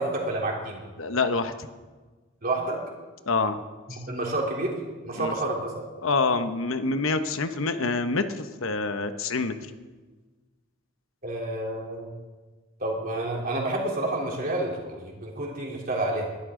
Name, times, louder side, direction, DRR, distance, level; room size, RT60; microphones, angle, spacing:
voice 1, 0.0-0.8 2.4-2.8 3.9-4.7 5.0-5.8 11.2-12.1 12.8-16.3, right 2 dB, 40° right, -2 dB, 3.4 m, -29 dB
voice 2, 1.0-1.5 3.3-3.6 5.2-5.3 6.0-9.5, left 3 dB, 70° left, 9 dB, 1.0 m, -26 dB
21.0 x 13.0 x 3.8 m, 1.3 s
head